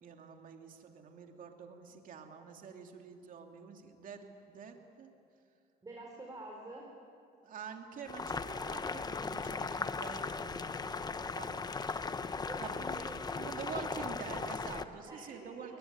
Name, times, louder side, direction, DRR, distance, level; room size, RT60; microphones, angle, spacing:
voice 1, 0.0-5.1 7.4-12.1 12.6-12.8 13.4-15.8, right 6 dB, 55° right, 3 dB, 2.8 m, -47 dB
voice 2, 5.8-6.9 12.5-14.5 15.1-15.8, right 1 dB, 20° right, -1 dB, 4.3 m, -49 dB
Boiling, 8.1-14.8, left 4 dB, 25° left, 1.0 m, -38 dB
23.0 x 20.5 x 9.8 m, 2.5 s
cardioid pair, 110°, 17 cm